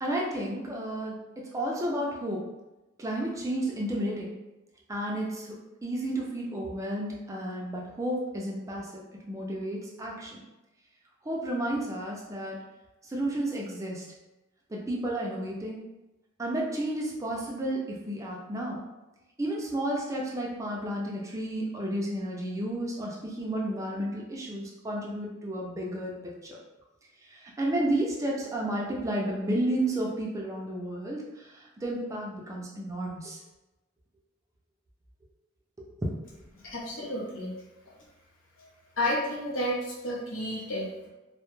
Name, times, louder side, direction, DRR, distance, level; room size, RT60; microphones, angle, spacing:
voice 1, 0.0-2.4 3.0-4.4 4.9-9.0 9.3-10.4 11.2-12.6 13.0-14.0 14.7-15.8 16.4-18.8 19.4-26.1 26.4-26.6 27.2-33.4 36.0-36.1, right 1 dB, 15° right, -3 dB, 0.3 m, -32 dB
voice 2, 36.6-37.5 37.8-37.9 38.6-38.7 39.0-41.1, left 1 dB, 75° left, -4 dB, 0.7 m, -31 dB
2.1 x 2.0 x 3.0 m, 1.0 s
head